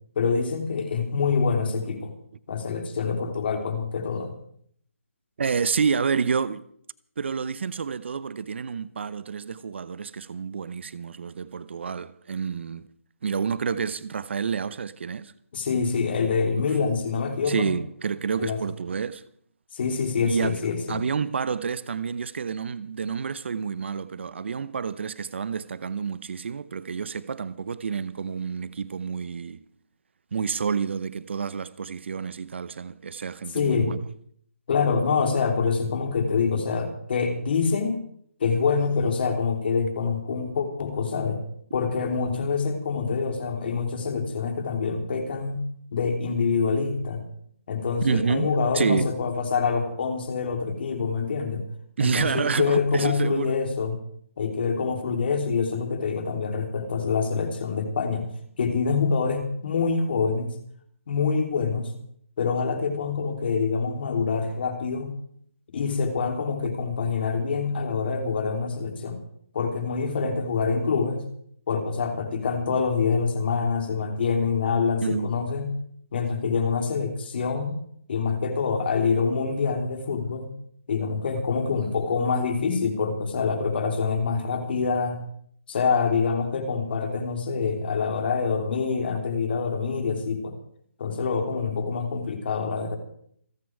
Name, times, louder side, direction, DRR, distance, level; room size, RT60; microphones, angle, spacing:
voice 1, 0.1-2.1 2.5-4.3 15.5-17.7 18.4-18.6 19.7-21.0 33.5-34.0 34.7-38.0 38.4-41.4 41.7-45.6 45.9-47.2 47.7-51.6 52.0-54.0 54.4-58.3 58.6-60.5 61.1-61.9 62.4-65.1 65.7-69.2 69.5-71.3 71.7-75.7 76.1-77.8 78.1-80.5 80.9-85.2 85.7-90.5 91.0-93.0, left 5 dB, 45° left, 3.4 m, -26 dB
voice 2, 5.4-6.6 7.2-12.9 13.2-15.3 16.6-16.7 17.5-19.2 20.2-20.5 20.9-29.6 30.3-34.1 48.0-48.5 48.7-49.1 52.0-53.5 75.0-75.3, right 6 dB, 50° right, 0.8 m, -29 dB
28.0 x 9.4 x 4.7 m
figure-of-eight pair, 155°, 8 cm